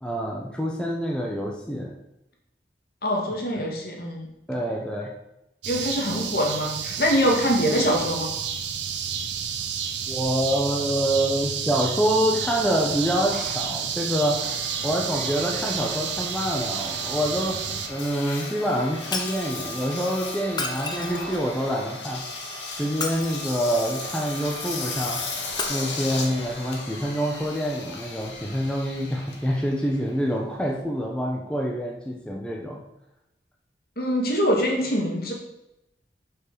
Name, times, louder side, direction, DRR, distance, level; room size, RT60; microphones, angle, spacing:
voice 1, 0.0-1.9 4.5-5.1 10.1-14.4 14.8-22.3 22.8-25.3 25.7-32.8, equal, 5° left, -1 dB, 0.9 m, -26 dB
voice 2, 3.0-4.3 5.7-8.3 34.0-35.3, equal, 55° left, 0 dB, 2.3 m, -24 dB
sound 1, 5.6-17.9, right 7 dB, 90° right, 1.0 m, -30 dB
Engine, 12.4-30.8, left 3 dB, 85° left, 2.1 m, -36 dB
Shatter, 19.1-19.5 20.5-21.5 22.9-23.8 25.5-25.6, left 4 dB, 25° left, 1.0 m, -32 dB
7.9 x 5.7 x 6.7 m, 0.90 s
head